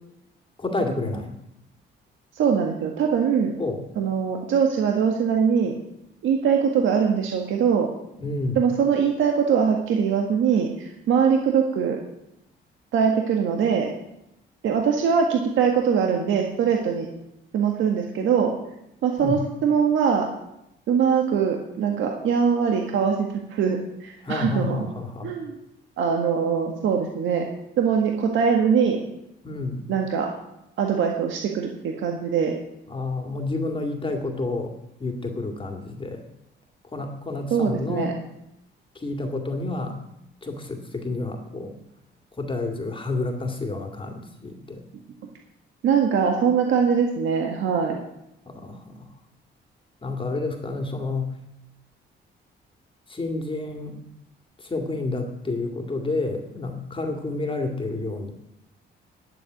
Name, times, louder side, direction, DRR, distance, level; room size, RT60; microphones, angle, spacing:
voice 1, 0.6-1.3 3.6-3.9 8.2-8.6 19.2-19.4 24.2-25.3 29.4-29.9 32.9-34.7 35.0-36.2 36.9-38.1 38.9-40.0 40.4-41.8 42.4-44.8 48.5-49.1 50.0-51.3 53.1-54.0 54.6-58.3, left 2 dB, 25° left, 4 dB, 2.3 m, -29 dB
voice 2, 2.4-3.5 4.0-5.7 6.2-7.9 8.6-12.0 12.9-13.9 14.6-17.1 17.5-18.5 19.0-20.3 20.9-24.9 25.2-25.5 26.0-27.4 27.8-29.0 29.9-30.3 30.8-32.5 37.5-38.1 45.8-48.0, right 7 dB, 75° right, 2 dB, 1.7 m, -22 dB
10.5 x 7.8 x 9.5 m, 0.83 s
cardioid pair, 90°, 20 cm